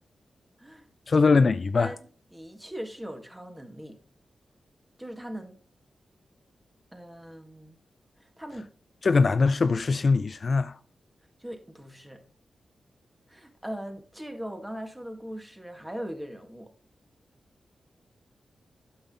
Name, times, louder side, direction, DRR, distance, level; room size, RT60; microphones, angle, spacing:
voice 1, 1.1-1.9 9.0-10.7, left 4 dB, 55° left, 0.4 m, -22 dB
voice 2, 2.3-4.0 5.0-5.6 6.9-7.8 8.2-8.7 11.4-12.2 13.3-16.7, equal, 10° right, 2.0 m, -40 dB
8.6 x 6.0 x 3.8 m
cardioid pair, 50°, 0 cm